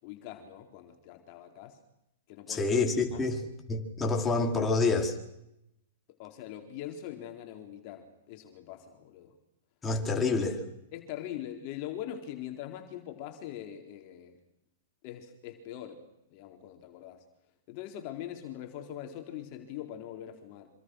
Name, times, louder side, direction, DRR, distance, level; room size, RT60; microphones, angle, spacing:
voice 1, 0.0-1.8 2.3-2.7 3.1-3.2 6.2-9.3 10.1-10.3 10.9-14.4 15.0-16.1 16.3-17.2 17.7-20.7, left 11 dB, 45° left, 4 dB, 3.9 m, -42 dB
voice 2, 2.5-3.4 3.7-5.2 9.8-10.5, left 3 dB, 15° left, 2 dB, 4.5 m, -27 dB
26.5 x 26.0 x 6.4 m, 0.83 s
hypercardioid pair, 125°, 0 cm